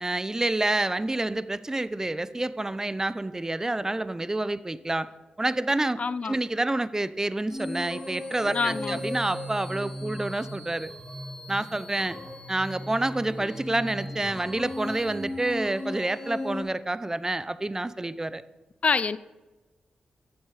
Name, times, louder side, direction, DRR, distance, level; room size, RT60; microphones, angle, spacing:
voice 1, 0.0-5.1 5.4-6.0 6.2-10.9 11.5-12.2 12.5-18.4, right 2 dB, 20° right, 16 dB, 0.5 m, -28 dB
voice 2, 6.0-6.4 8.5-9.0 18.8-19.2, left 4 dB, 45° left, 16 dB, 0.4 m, -26 dB
sound 1, 7.5-16.6, left 1 dB, 30° left, 3.2 m, -37 dB
8.4 x 7.1 x 5.0 m, 1.2 s
supercardioid pair, 50°, 3 cm